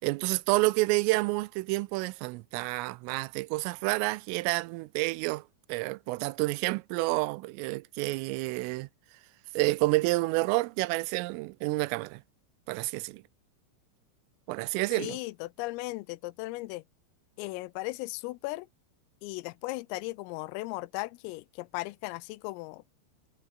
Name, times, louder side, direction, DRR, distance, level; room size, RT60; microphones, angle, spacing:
voice 1, 0.0-8.9 9.5-12.2 12.7-13.2 14.5-15.2, right 22 dB, 85° right, 3.2 m, -29 dB
voice 2, 15.0-16.8 17.4-18.7 19.2-22.8, left 21 dB, 85° left, 3.4 m, -37 dB
omnidirectional pair, 5.9 m